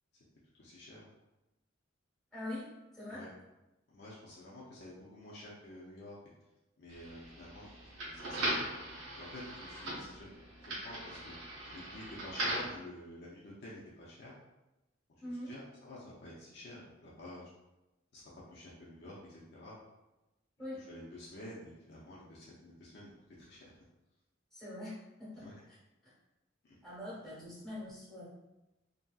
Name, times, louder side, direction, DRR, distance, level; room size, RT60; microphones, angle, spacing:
voice 1, 0.6-1.1 3.1-3.3 3.9-6.2 6.8-8.6 9.1-10.3 10.6-11.4 11.7-14.3 15.2-17.5 18.1-19.8 20.7-23.1 23.4-23.8 25.4-25.5 26.6-26.8, left 1 dB, 55° left, -7 dB, 0.5 m, -50 dB
voice 2, 2.3-2.7 2.9-3.2 15.2-15.5 20.6-20.8 24.5-24.9 25.2-25.4 26.0-26.1 26.8-28.3, left 1 dB, ahead, -9 dB, 1.0 m, -43 dB
sound 1, 6.9-12.8, right 1 dB, 90° right, 0.8 m, -39 dB
2.8 x 2.7 x 2.2 m, 0.99 s
head